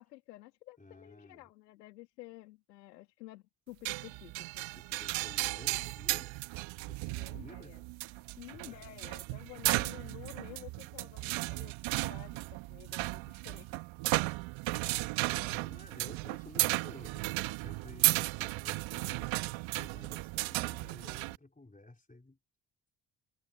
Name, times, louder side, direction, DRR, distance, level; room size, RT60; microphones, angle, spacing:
voice 1, 0.0-4.6 7.1-7.8 8.1-12.4 12.7-13.7, left 17 dB, 80° left, 2.7 m, -51 dB
voice 2, 0.8-1.5 4.7-6.3 6.9-7.7 8.5-8.8 15.2-22.4, left 2 dB, 15° left, 4.5 m, -54 dB
sound 1, 3.9-21.4, right 22 dB, 65° right, 1.2 m, -35 dB
figure-of-eight pair, 45°, 49 cm